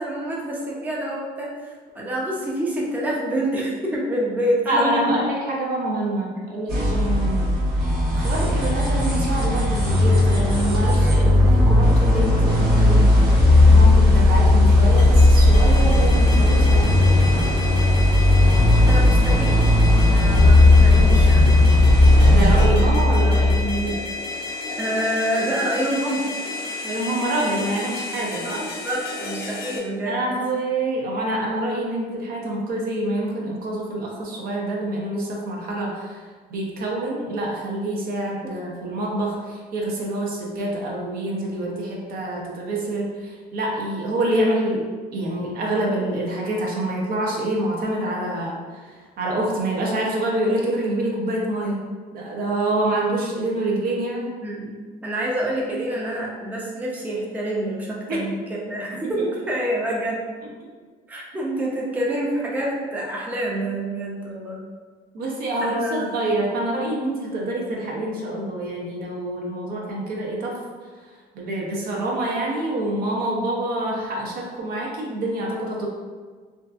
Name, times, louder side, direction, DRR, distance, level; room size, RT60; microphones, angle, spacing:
voice 1, 0.0-5.1 12.3-12.5 18.8-19.5 20.1-21.5 24.8-26.3 28.4-30.2 54.4-54.7 55.0-58.4 58.7-59.2 59.5-60.2 61.1-64.6 65.6-66.1, right 1 dB, 10° right, -3 dB, 0.4 m, -27 dB
voice 2, 4.7-7.4 8.1-17.3 22.1-24.0 26.8-28.6 30.1-36.2 36.5-51.8 52.1-54.3 58.1-58.3 58.9-59.1 65.1-70.6 71.3-75.9, right 1 dB, 60° right, -2 dB, 0.6 m, -26 dB
sound 1, 6.7-22.7, equal, 75° right, 1.0 m, -22 dB
sound 2, 9.8-23.9, left 2 dB, 40° right, 0.9 m, -16 dB
sound 3, 15.0-29.8, left 3 dB, 60° left, 0.5 m, -32 dB
2.6 x 2.4 x 2.3 m, 1.5 s
cardioid pair, 110°, 17 cm